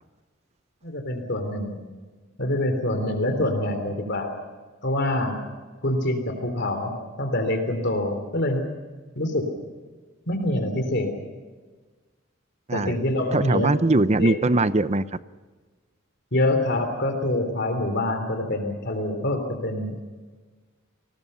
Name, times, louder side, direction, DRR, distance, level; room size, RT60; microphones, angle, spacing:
voice 1, 0.8-1.8 2.4-4.3 4.8-5.4 5.8-6.9 7.2-8.7 9.1-9.4 10.3-11.1 12.7-13.7 14.2-14.3 16.3-20.0, left 1 dB, 55° left, 6 dB, 3.3 m, -25 dB
voice 2, 13.3-15.0, right 2 dB, 35° right, 14 dB, 0.7 m, -21 dB
29.0 x 20.5 x 5.7 m, 1.3 s
head